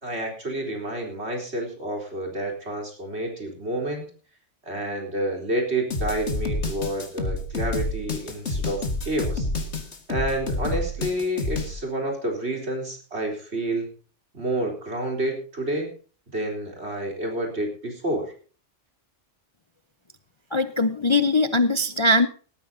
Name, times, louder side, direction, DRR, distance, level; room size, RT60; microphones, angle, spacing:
voice 1, 0.0-4.0 4.6-9.5 10.1-13.9 14.3-15.9 16.3-18.3, right 1 dB, 65° right, 2 dB, 4.1 m, -29 dB
sound 1, 5.9-11.7, left 2 dB, 65° left, 2.3 m, -28 dB
voice 2, 20.5-22.3, left 2 dB, 30° left, 11 dB, 0.6 m, -21 dB
18.5 x 13.0 x 2.7 m, 0.39 s
omnidirectional pair, 1.2 m